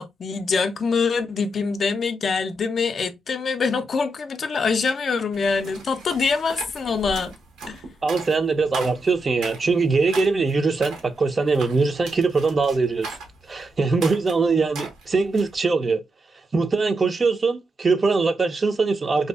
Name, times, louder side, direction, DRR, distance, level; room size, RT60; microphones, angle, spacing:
voice 1, 0.0-7.3 7.7-7.8, left 5 dB, 50° left, 0.4 m, -24 dB
sound 1, 5.3-15.6, right 3 dB, 85° right, 1.0 m, -39 dB
voice 2, 8.0-13.1 13.5-16.0 16.5-19.3, right 4 dB, 35° right, 0.4 m, -22 dB
2.6 x 2.3 x 2.2 m
cardioid pair, 90°, 0 cm